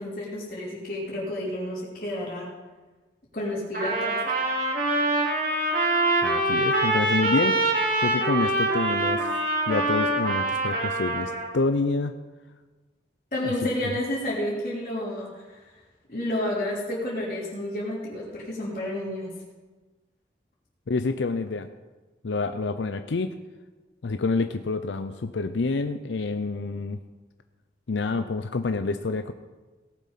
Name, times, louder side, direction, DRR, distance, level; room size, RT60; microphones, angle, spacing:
voice 1, 0.0-2.5 3.3-4.2 13.3-15.7 16.1-19.3, left 1 dB, 45° left, -9 dB, 3.3 m, -30 dB
Trumpet, 3.7-11.5, right 2 dB, 50° right, 2.9 m, -24 dB
voice 2, 6.2-7.6 8.0-9.3 9.7-12.2 13.4-13.5 13.8-14.0 20.9-21.7 22.2-23.3 24.0-27.0 27.9-29.3, left 3 dB, 85° left, 9 dB, 0.6 m, -27 dB
17.5 x 7.5 x 5.6 m, 1.3 s
head